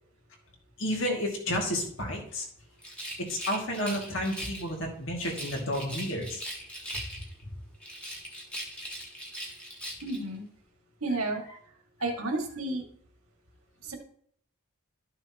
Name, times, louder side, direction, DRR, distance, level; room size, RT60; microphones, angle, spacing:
voice 1, 0.8-2.4 3.2-6.4, equal, 60° left, 0 dB, 2.4 m, -31 dB
Rattle, 2.8-4.7 5.2-7.4 7.8-10.2, equal, 5° left, 1.8 m, -40 dB
voice 2, 10.0-10.4 11.0-11.4 12.0-12.8 13.8-13.9, right 2 dB, 85° right, 2 dB, 2.1 m, -31 dB
12.5 x 6.5 x 3.0 m, 0.63 s
head